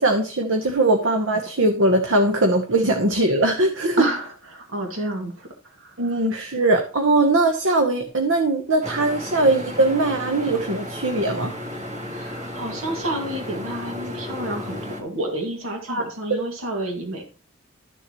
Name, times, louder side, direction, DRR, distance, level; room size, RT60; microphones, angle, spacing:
voice 1, 0.0-4.0 6.0-11.5 15.9-16.0, right 2 dB, 65° right, 4 dB, 1.0 m, -20 dB
voice 2, 4.0-6.2 11.9-17.2, right 1 dB, 85° right, 2 dB, 2.2 m, -30 dB
sound 1, 8.8-15.0, left 1 dB, 35° right, 2.0 m, -33 dB
13.0 x 7.0 x 3.1 m, 0.37 s
head